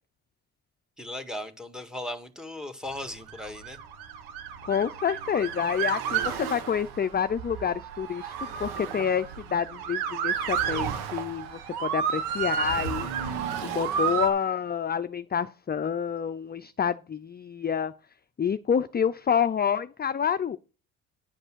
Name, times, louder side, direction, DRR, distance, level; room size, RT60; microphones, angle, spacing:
voice 1, 1.0-3.8, left 1 dB, ahead, 1.8 m, -37 dB
Motor vehicle (road) / Siren, 3.2-14.3, right 7 dB, 90° right, 1.5 m, -31 dB
voice 2, 4.6-8.3 8.6-13.1 13.6-17.9 18.4-20.6, left 7 dB, 25° left, 0.6 m, -28 dB
10.0 x 5.3 x 6.2 m
supercardioid pair, 65°, 38 cm